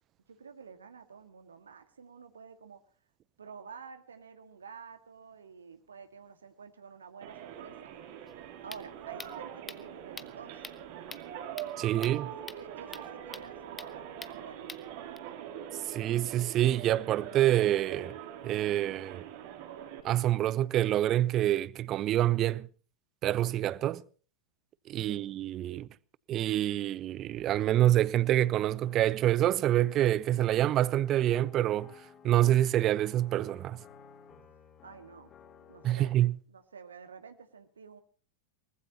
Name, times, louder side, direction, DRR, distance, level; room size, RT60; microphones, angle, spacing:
voice 1, 0.3-2.8 3.4-8.0 8.6-10.6 12.0-15.2 25.1-25.2 34.8-35.3 35.7-36.2 36.5-38.0, right 6 dB, 70° right, 1.9 m, -50 dB
sound 1, 7.2-20.0, right 10 dB, 50° right, 3.3 m, -43 dB
sound 2, 8.3-15.2, left 4 dB, 15° left, 1.1 m, -48 dB
voice 2, 11.8-12.3 15.9-18.1 18.4-19.2 20.0-22.7 23.2-24.0 24.9-25.9 26.3-31.9 32.2-33.8 35.8-36.4, right 13 dB, 35° right, 0.7 m, -27 dB
sound 3, 28.3-36.3, left 6 dB, 30° left, 4.3 m, -56 dB
23.0 x 20.0 x 2.9 m
figure-of-eight pair, 90°, 0 cm